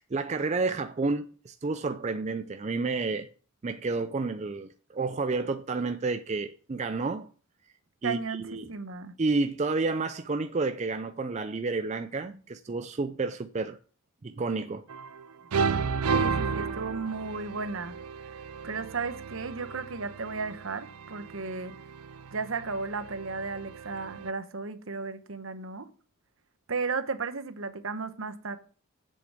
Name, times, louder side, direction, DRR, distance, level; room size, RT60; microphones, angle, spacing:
voice 1, 0.0-3.3 3.6-7.3 8.0-8.7 9.2-13.8 14.2-14.8, right 3 dB, 30° right, 0.4 m, -30 dB
voice 2, 8.0-9.1 16.1-18.0 18.6-21.8 22.3-25.9 26.7-28.6, right 4 dB, 60° right, 1.0 m, -34 dB
sound 1, 14.9-15.3 15.5-24.3, right 5 dB, 85° right, 0.6 m, -33 dB
7.7 x 6.8 x 7.5 m
head